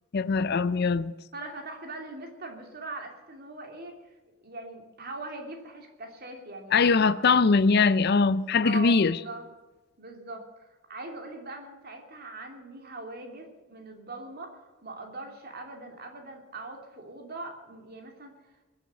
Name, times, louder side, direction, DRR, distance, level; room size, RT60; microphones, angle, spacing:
voice 1, 0.1-1.1 6.7-9.2, left 4 dB, 50° left, 0.5 m, -22 dB
voice 2, 1.3-4.2 4.4-7.2 8.6-9.4 10.0-18.3, right 2 dB, 45° right, 2.9 m, -41 dB
21.5 x 7.9 x 8.3 m
head